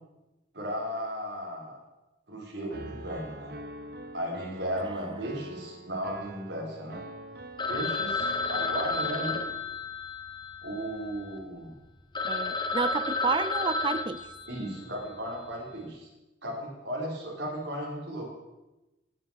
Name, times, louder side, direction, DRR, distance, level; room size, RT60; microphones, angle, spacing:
voice 1, 0.5-1.8 2.3-3.5 4.1-7.0 7.7-9.4 10.6-11.7 14.5-16.1 16.4-18.3, equal, 75° right, -3 dB, 4.2 m, -35 dB
Piano, 2.7-9.6, right 2 dB, 55° right, 1.1 m, -44 dB
Telephone, 7.6-11.4 11.8-11.9 12.1-15.0, left 3 dB, 25° left, 1.0 m, -32 dB
voice 2, 12.2-14.3, right 4 dB, 25° right, 15 dB, 0.4 m, -30 dB
17.5 x 6.2 x 7.1 m, 1.0 s
head